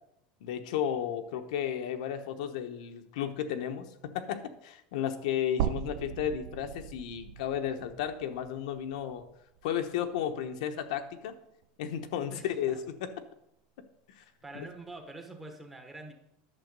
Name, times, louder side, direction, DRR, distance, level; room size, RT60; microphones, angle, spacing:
voice 1, 0.4-9.2 9.6-11.3 11.8-12.8 14.2-14.3 14.5-14.7, left 9 dB, 70° left, 6 dB, 1.0 m, -33 dB
sound 1, 5.6-9.7 10.1-10.2 11.6-11.7, right 11 dB, 60° right, 0.6 m, -38 dB
voice 2, 12.3-12.8 14.4-16.1, right 2 dB, 10° right, 4 dB, 1.0 m, -45 dB
11.0 x 7.0 x 5.3 m, 0.80 s
supercardioid pair, 175°, 4 cm